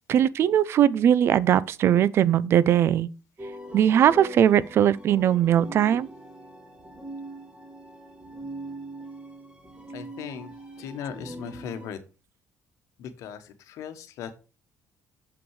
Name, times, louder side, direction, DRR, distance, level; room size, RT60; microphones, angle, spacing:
voice 1, 0.1-3.1 3.7-6.1, right 10 dB, 50° right, 0.5 m, -20 dB
sound 1, 3.4-11.9, right 1 dB, 20° right, 1.5 m, -42 dB
voice 2, 9.9-10.5 10.8-12.0 13.0-14.3, left 8 dB, 80° left, 1.3 m, -38 dB
7.0 x 6.1 x 4.7 m
cardioid pair, 150°, 5 cm